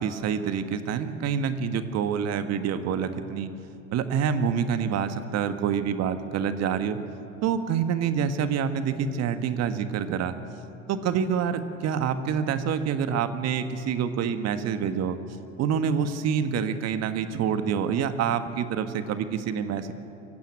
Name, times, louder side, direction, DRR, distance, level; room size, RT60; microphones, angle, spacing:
voice 1, 0.0-3.5 3.9-7.0 7.4-10.3 10.9-15.2 15.6-19.9, right 7 dB, 45° right, 9 dB, 1.7 m, -27 dB
24.0 x 15.5 x 9.0 m, 2.7 s
hypercardioid pair, 80°, 37 cm